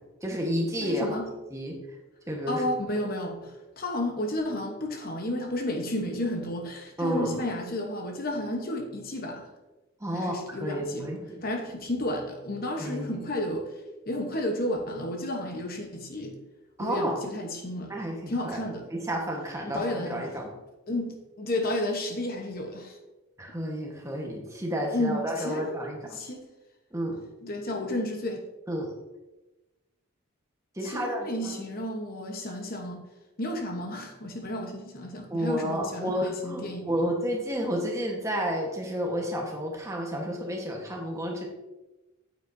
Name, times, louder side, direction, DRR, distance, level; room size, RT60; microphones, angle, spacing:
voice 1, 0.2-1.2 1.5-2.0 2.3-2.6 7.0-7.4 10.0-11.4 12.8-13.2 16.8-17.2 17.9-18.6 18.9-20.5 23.4-26.2 26.9-27.2 28.7-28.9 30.7-31.7 35.3-41.4, equal, 15° right, 0 dB, 1.2 m, -31 dB
voice 2, 0.8-1.3 2.5-9.5 10.1-11.1 11.4-13.7 14.1-16.4 16.8-17.9 18.3-18.9 19.6-20.2 20.9-23.0 24.9-26.5 27.4-28.5 30.8-33.0 33.4-37.1, left 1 dB, 45° left, 3 dB, 1.0 m, -32 dB
9.2 x 8.3 x 2.7 m, 1.1 s
head